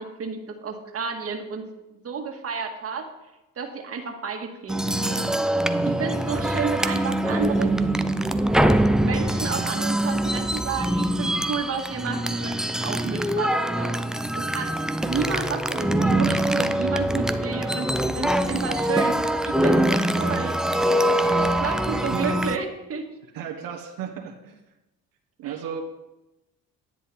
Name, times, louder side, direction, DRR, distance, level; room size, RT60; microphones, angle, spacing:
voice 1, 0.0-3.1 3.6-5.3 5.8-7.7 9.0-13.9 14.3-14.7 15.0-19.2 19.4-20.6 21.4-23.1 25.4-25.6, right 5 dB, 45° right, 3 dB, 1.8 m, -31 dB
sound 1, 4.7-22.6, right 1 dB, ahead, 0.5 m, -23 dB
voice 2, 22.1-22.4 23.3-24.6 25.4-25.8, right 8 dB, 80° right, 3 dB, 1.2 m, -34 dB
10.0 x 9.9 x 4.2 m, 0.98 s
cardioid pair, 90°, 33 cm